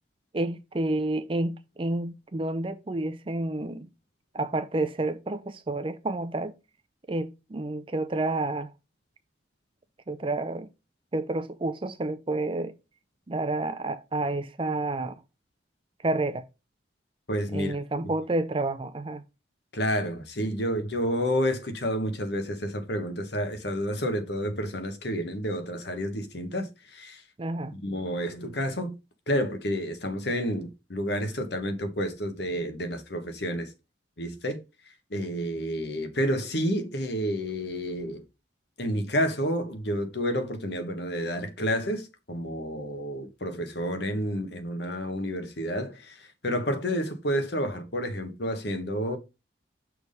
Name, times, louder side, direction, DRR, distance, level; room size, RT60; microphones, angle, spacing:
voice 1, 0.3-3.9 4.3-6.5 7.1-8.7 10.1-10.7 11.1-12.7 13.3-15.1 16.0-16.4 17.5-19.2 27.4-27.8, right 2 dB, 30° right, 0.5 m, -29 dB
voice 2, 17.3-17.8 19.7-27.2 27.8-29.0 29.3-33.7 34.2-34.6 35.1-38.2 38.8-49.2, equal, 60° left, 1.3 m, -30 dB
6.2 x 3.5 x 5.3 m
head